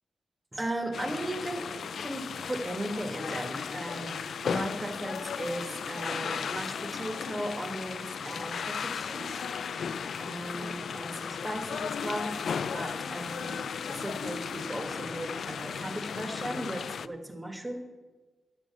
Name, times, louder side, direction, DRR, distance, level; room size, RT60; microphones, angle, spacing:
voice 1, 0.5-9.4 9.7-9.9 10.2-17.8, right 1 dB, 15° right, 4 dB, 1.4 m, -37 dB
sound 1, 0.9-17.1, left 6 dB, 70° left, 0.3 m, -35 dB
10.5 x 7.5 x 7.3 m, 1.3 s
wide cardioid pair, 140°, 0 cm